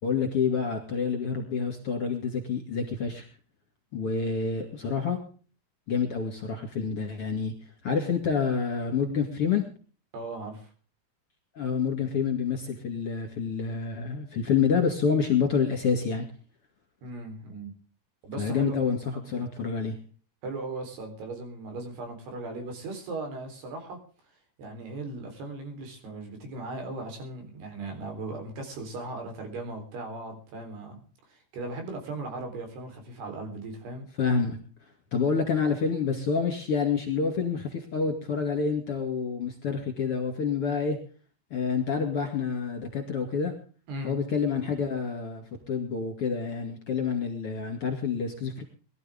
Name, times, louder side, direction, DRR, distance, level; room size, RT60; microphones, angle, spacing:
voice 1, 0.0-3.3 3.9-5.2 5.9-7.5 7.8-9.6 11.5-16.2 18.4-19.0 19.2-20.0 34.2-34.6 35.1-41.0 41.5-43.5 44.0-48.6, left 6 dB, 40° left, 4 dB, 2.7 m, -28 dB
voice 2, 10.1-10.7 17.0-17.7 18.2-18.7 19.1-19.4 20.4-24.0 24.2-34.1 43.9-44.2, right 2 dB, 70° right, 5 dB, 5.8 m, -38 dB
21.5 x 13.0 x 3.6 m, 0.39 s
omnidirectional pair, 4.9 m